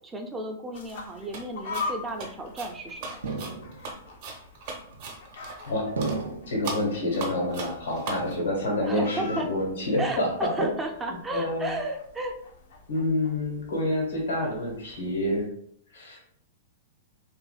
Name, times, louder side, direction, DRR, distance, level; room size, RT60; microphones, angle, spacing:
voice 1, 0.0-3.3 8.9-9.5 10.0-12.3, right 2 dB, 15° right, 3 dB, 0.4 m, -34 dB
sound 1, 0.7-15.5, left 4 dB, 60° left, 0.5 m, -43 dB
sound 2, 1.3-1.5 1.7-5.7 6.0-6.2 6.6-8.3, right 3 dB, 50° right, 0.7 m, -38 dB
sound 3, 3.2-4.1 4.9-5.4 6.0-6.8 7.3-7.9 8.2-9.0 9.3-9.7 10.1-10.7, right 3 dB, 85° right, 0.4 m, -36 dB
voice 2, 6.5-10.7 11.3-11.8 12.9-15.4 15.9-16.2, left 1 dB, 80° left, -2 dB, 1.2 m, -27 dB
2.6 x 2.5 x 2.2 m, 0.66 s
hypercardioid pair, 110°, 0 cm